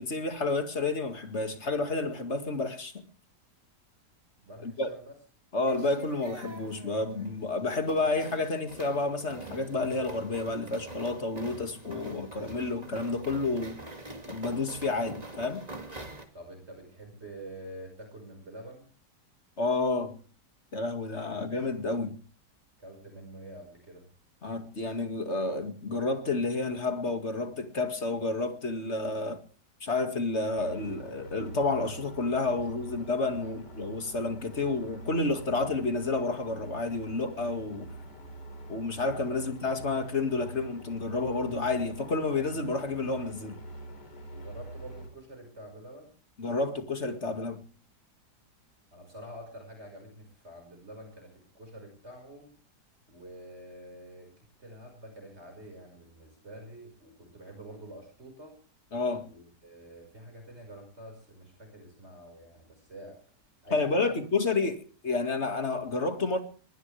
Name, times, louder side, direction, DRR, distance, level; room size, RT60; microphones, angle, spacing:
voice 1, 0.0-3.1 4.6-4.9 5.5-13.8 14.3-15.7 19.6-20.2 20.7-22.2 24.4-29.4 29.8-37.9 38.7-43.6 46.4-47.6 58.9-59.3 63.7-66.4, left 3 dB, 40° left, 2.4 m, -30 dB
voice 2, 4.4-5.1 16.3-18.9 21.3-21.4 22.8-24.1 32.8-33.0 33.3-33.6 39.3-39.4 44.3-46.1 48.9-52.5 53.1-58.6 59.3-63.2 63.6-64.2, right 1 dB, 40° right, 5.9 m, -47 dB
sound 1, 5.7-16.3, right 2 dB, 25° right, 2.4 m, -44 dB
sound 2, 30.6-45.1, right 1 dB, 80° left, 4.3 m, -44 dB
21.0 x 19.5 x 3.4 m
omnidirectional pair, 1.8 m